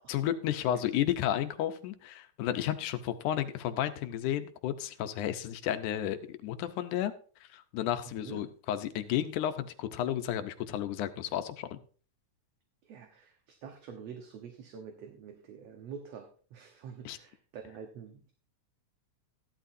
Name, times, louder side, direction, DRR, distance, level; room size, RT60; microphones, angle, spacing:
voice 1, 0.1-7.1 7.5-11.8 17.1-17.2, left 11 dB, 80° left, 9 dB, 2.3 m, -32 dB
voice 2, 8.1-8.4 12.8-18.3, right 7 dB, 60° right, 4 dB, 2.0 m, -47 dB
14.5 x 11.5 x 2.7 m, 0.41 s
omnidirectional pair, 3.6 m